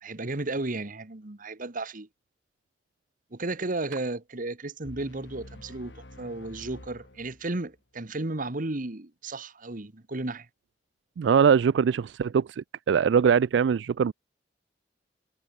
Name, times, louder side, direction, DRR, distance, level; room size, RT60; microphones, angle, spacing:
voice 1, 0.0-2.1 3.3-10.5, right 2 dB, 50° right, 1.5 m, -34 dB
sound 1, 4.8-7.8, left 1 dB, 90° left, 3.7 m, -48 dB
voice 2, 11.2-14.1, right 7 dB, 80° right, 0.4 m, -22 dB
head